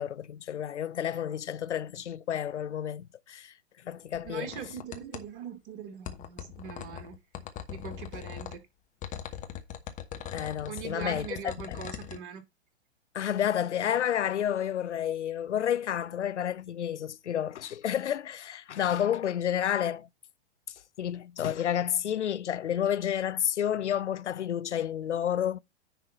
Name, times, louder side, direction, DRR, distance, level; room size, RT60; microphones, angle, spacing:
voice 1, 0.0-3.5 3.9-4.5 10.3-11.3 11.7-11.8 13.1-20.1 21.0-25.6, left 10 dB, 90° left, 0.6 m, -30 dB
sound 1, 4.1-5.3 6.1-8.6 9.0-12.2, left 10 dB, 20° left, 1.1 m, -41 dB
voice 2, 4.2-7.2 7.7-8.6 10.7-12.4, right 7 dB, 50° right, 2.3 m, -41 dB
10.0 x 3.8 x 5.4 m
hypercardioid pair, 120°, 34 cm